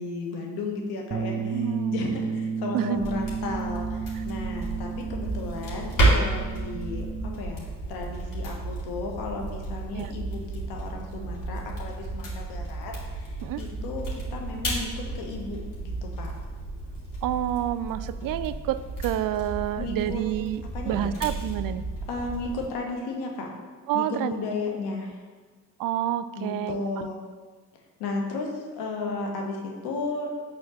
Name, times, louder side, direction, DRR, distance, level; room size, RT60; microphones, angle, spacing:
voice 1, 0.0-10.4 10.7-16.3 19.8-20.2 20.7-21.2 22.1-23.5 23.9-25.2 26.3-27.2 28.0-30.4, left 3 dB, 80° left, 1 dB, 1.5 m, -34 dB
Bass guitar, 1.1-7.4, right 5 dB, 40° right, 1.2 m, -32 dB
voice 2, 1.4-2.0 2.7-3.0 9.9-10.1 13.4-13.6 17.2-21.8 23.9-24.3 25.8-27.1, right 12 dB, 60° right, 13 dB, 0.5 m, -29 dB
sound 1, 2.9-22.7, right 2 dB, 60° left, 2.4 m, -32 dB
7.0 x 4.2 x 6.5 m, 1.5 s
supercardioid pair, 65°, 38 cm